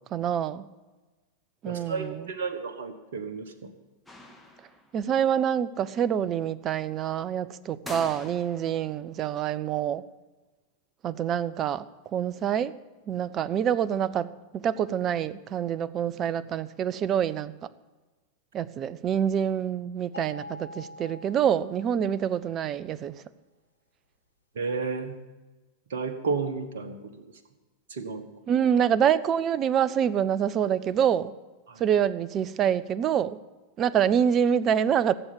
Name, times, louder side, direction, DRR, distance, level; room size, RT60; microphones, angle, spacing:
voice 1, 0.1-0.7 1.6-2.3 4.9-10.0 11.0-12.7 13.1-14.3 14.5-17.7 18.5-23.2 28.5-31.3 31.8-33.4 33.8-35.1, right 9 dB, 30° right, 18 dB, 0.6 m, -26 dB
voice 2, 1.6-3.7 24.5-25.1 25.9-27.0 27.9-28.3 31.7-31.8, right 4 dB, 60° right, 8 dB, 1.4 m, -32 dB
sound 1, 4.1-5.0 7.9-8.9, left 1 dB, ahead, 1.8 m, -43 dB
sound 2, 20.1-22.4, left 2 dB, 85° left, 1.1 m, -45 dB
16.0 x 7.9 x 7.0 m, 1.2 s
figure-of-eight pair, 90°, 0 cm